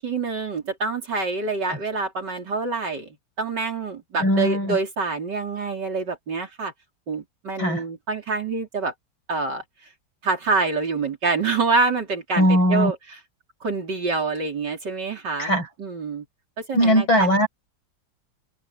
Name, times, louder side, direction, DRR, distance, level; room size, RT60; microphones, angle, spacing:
voice 1, 0.0-3.1 3.4-6.7 7.1-8.9 9.3-9.6 10.2-13.0 13.6-16.2 16.6-17.4, right 4 dB, 55° right, 4.1 m, -26 dB
voice 2, 4.2-4.8 7.6-7.8 12.4-12.9 15.4-15.7 16.7-17.5, equal, 70° left, 7.6 m, -19 dB
omnidirectional pair, 2.2 m